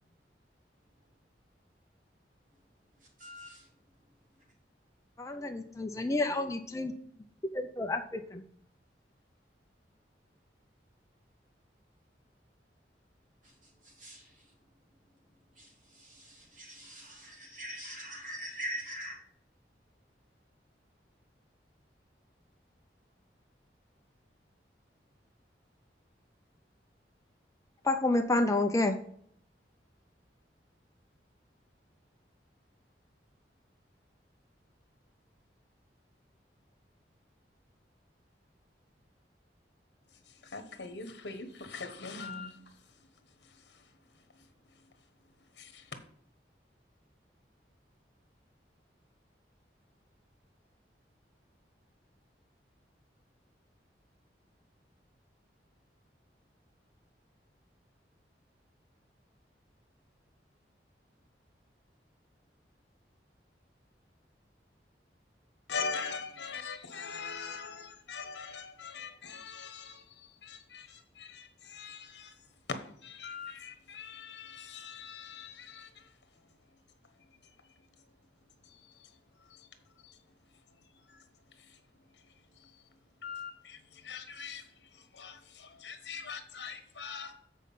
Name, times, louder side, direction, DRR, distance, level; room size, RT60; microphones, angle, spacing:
voice 1, 3.2-3.6 13.8-14.3 15.6-19.2, equal, 45° right, -1 dB, 2.7 m, -43 dB
voice 2, 5.2-6.9 7.5-8.4 27.8-29.0, left 2 dB, 20° left, 4 dB, 0.6 m, -29 dB
voice 3, 40.1-46.0 65.7-78.2 78.6-87.3, left 5 dB, 80° left, 8 dB, 1.1 m, -44 dB
8.0 x 4.7 x 5.5 m, 0.65 s
head